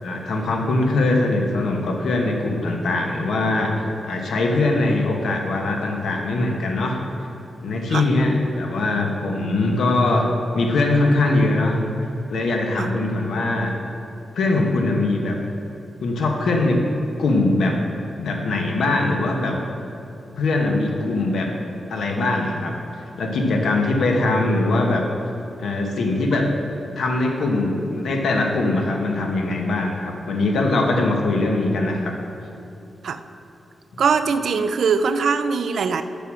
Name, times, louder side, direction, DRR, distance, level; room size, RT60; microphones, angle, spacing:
voice 1, 0.0-7.0 7.6-10.3 10.5-11.8 12.3-13.7 14.3-15.4 16.0-16.8 17.2-17.8 18.2-19.5 20.4-21.5 21.9-25.0 25.6-26.5 27.0-32.1, left 2 dB, 80° left, 1 dB, 1.1 m, -21 dB
voice 2, 34.0-36.0, right 5 dB, 65° right, 9 dB, 0.4 m, -21 dB
6.8 x 6.2 x 6.2 m, 2.9 s
wide cardioid pair, 155°, 0 cm